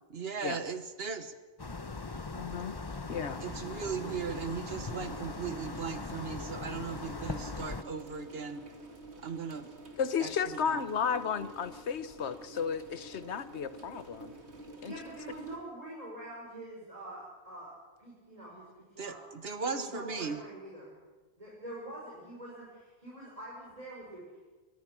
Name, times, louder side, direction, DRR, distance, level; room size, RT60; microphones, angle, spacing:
voice 1, 0.1-1.3 3.4-8.6 9.2-9.7 10.2-10.8 19.0-20.4, right 5 dB, 65° right, 10 dB, 1.6 m, -38 dB
sound 1, 1.6-7.8, left 3 dB, 25° left, 0.8 m, -40 dB
voice 2, 2.4-2.7 3.1-3.4 10.0-14.3 14.8-14.9, left 7 dB, 85° left, 14 dB, 1.2 m, -33 dB
sound 2, 3.1-15.6, right 1 dB, 90° right, 2.7 m, -49 dB
voice 3, 14.9-17.7 18.0-18.7 18.9-19.2 19.7-21.0 21.4-24.5, right 1 dB, 35° right, -5 dB, 5.8 m, -45 dB
24.0 x 20.5 x 6.1 m, 1.3 s
omnidirectional pair, 1.1 m